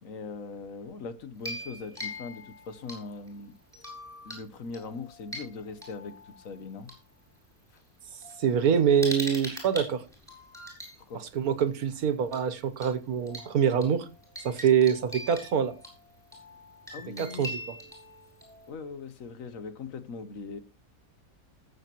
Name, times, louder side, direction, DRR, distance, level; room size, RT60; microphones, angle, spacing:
voice 1, 0.0-3.6 4.2-6.9 7.7-7.8 11.1-11.3 16.9-17.4 18.7-20.6, left 4 dB, 65° left, 1.3 m, -40 dB
sound 1, 1.3-3.3 3.7-4.4 4.7-6.9 7.8-7.9 8.2-11.0 12.3-12.5 12.8-12.9 13.3-18.7, left 1 dB, ahead, 7.4 m, -42 dB
voice 2, 8.4-10.0 11.3-14.1 14.4-15.7 17.2-17.6, right 7 dB, 75° right, 1.6 m, -25 dB
19.5 x 8.1 x 3.0 m
omnidirectional pair, 1.6 m